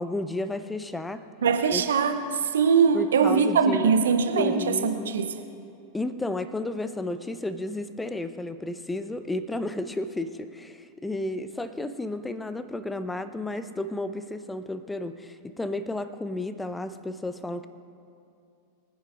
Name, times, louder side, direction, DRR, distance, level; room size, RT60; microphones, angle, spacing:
voice 1, 0.0-1.2 1.7-1.9 2.9-3.9 4.4-5.1 5.9-17.7, left 2 dB, 10° left, 12 dB, 0.6 m, -32 dB
voice 2, 1.4-2.2 2.5-5.3, right 6 dB, 65° right, 7 dB, 0.9 m, -22 dB
23.5 x 10.0 x 2.6 m, 2.6 s
figure-of-eight pair, 90°, 0 cm